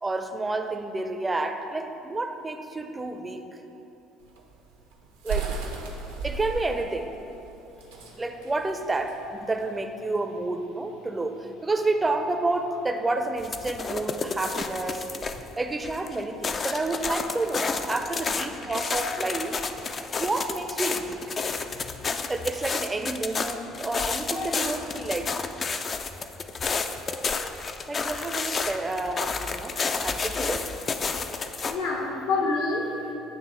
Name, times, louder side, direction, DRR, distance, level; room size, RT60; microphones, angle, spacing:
voice 1, 0.0-3.6 5.2-5.6 6.2-7.2 8.2-15.1 15.6-19.6 20.2-21.2 22.3-25.4 27.9-30.7, right 2 dB, 20° right, 6 dB, 0.5 m, -30 dB
sound 1, 4.2-9.8, right 5 dB, 75° right, 0.7 m, -35 dB
sound 2, 13.4-15.5 15.8-31.8, left 4 dB, 35° left, 0.3 m, -31 dB
voice 2, 24.3-24.8 31.6-33.1, left 3 dB, 70° left, -1 dB, 0.9 m, -28 dB
8.7 x 3.0 x 4.4 m, 2.9 s
hypercardioid pair, 55°, 0 cm